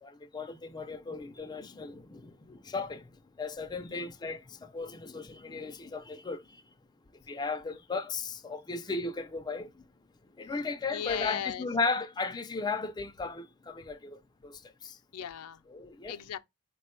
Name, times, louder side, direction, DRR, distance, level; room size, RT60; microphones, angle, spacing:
voice 1, 0.0-3.1 3.4-6.6 7.3-9.8 10.4-15.0 15.7-16.2, left 4 dB, 20° left, 0.4 m, -36 dB
voice 2, 10.9-11.7 15.1-15.6 16.1-16.4, left 9 dB, 85° left, 0.4 m, -37 dB
4.3 x 2.2 x 4.3 m
head